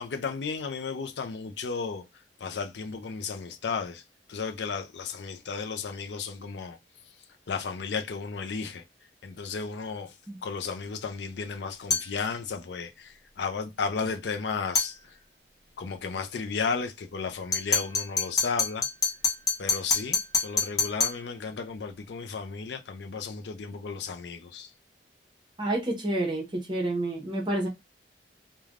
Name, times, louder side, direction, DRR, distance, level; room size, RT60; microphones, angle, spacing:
voice 1, 0.0-2.0 2.4-4.0 4.3-6.8 7.5-8.8 9.2-10.1 10.4-15.2 15.8-18.9 19.6-24.7, left 5 dB, 75° left, 0.4 m, -34 dB
sound 1, 11.9-12.2 14.7-15.0 17.5-21.2, left 4 dB, 20° left, 0.9 m, -27 dB
voice 2, 25.6-27.7, right 1 dB, 25° right, 0.9 m, -29 dB
3.2 x 2.2 x 2.4 m
head